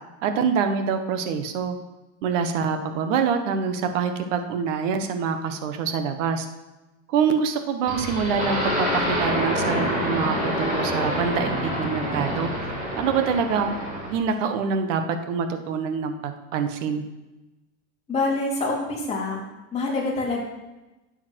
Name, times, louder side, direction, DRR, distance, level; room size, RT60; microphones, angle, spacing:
voice 1, 0.2-1.8 2.2-6.5 7.1-12.5 13.0-13.8 14.1-17.0, right 6 dB, 75° right, 7 dB, 1.4 m, -25 dB
sound 1, 7.9-14.2, equal, 20° right, 3.7 m, -26 dB
voice 2, 18.1-19.4 19.7-20.4, left 2 dB, 15° left, -5 dB, 3.6 m, -26 dB
12.0 x 8.8 x 4.6 m, 1.1 s
supercardioid pair, 150°, 38 cm